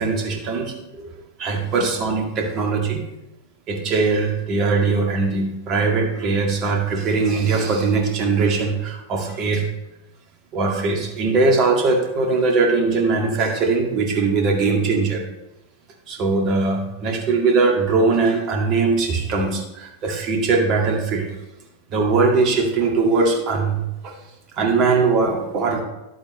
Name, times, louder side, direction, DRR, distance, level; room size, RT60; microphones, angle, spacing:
voice 1, 0.0-3.0 3.7-9.7 10.5-15.2 16.1-21.3 21.9-24.1 24.6-25.8, right 4 dB, 35° right, 2 dB, 2.0 m, -21 dB
11.0 x 8.5 x 3.2 m, 0.95 s
figure-of-eight pair, 90°, 0 cm